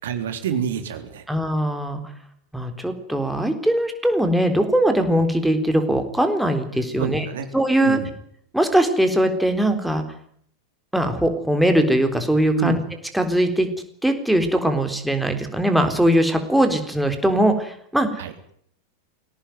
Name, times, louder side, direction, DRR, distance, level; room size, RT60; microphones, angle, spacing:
voice 1, 0.0-1.3 6.9-7.5 7.8-8.1 12.6-12.8 18.2-18.3, right 8 dB, 60° right, 7 dB, 3.5 m, -27 dB
voice 2, 1.3-2.0 2.5-7.2 7.5-8.0 8.5-10.0 10.9-12.8 13.1-13.7 14.0-18.1, right 1 dB, ahead, 5 dB, 3.8 m, -20 dB
23.0 x 18.0 x 9.3 m, 0.65 s
figure-of-eight pair, 90°, 0 cm